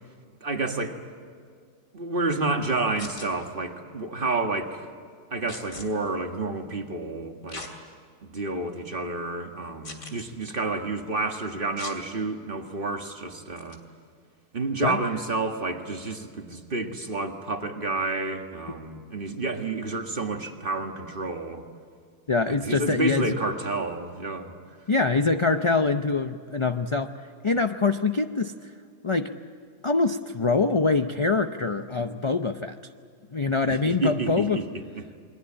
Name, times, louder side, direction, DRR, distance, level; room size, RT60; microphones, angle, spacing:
voice 1, 0.4-1.0 1.9-4.9 5.3-7.6 8.2-13.8 14.5-21.7 22.5-24.5 33.7-35.0, right 3 dB, 35° right, 4 dB, 1.9 m, -30 dB
sound 1, 3.0-3.3 5.5-5.9 7.5-7.7 8.3-8.4 9.8-10.2 11.8-12.0 13.6-13.8, left 3 dB, 60° left, 3.1 m, -39 dB
voice 2, 22.3-23.3 24.9-27.1 27.4-28.5 29.0-29.3 29.8-32.8 33.3-34.6, left 3 dB, 35° left, 7 dB, 0.4 m, -24 dB
29.0 x 22.0 x 8.8 m, 2.1 s
omnidirectional pair, 1.6 m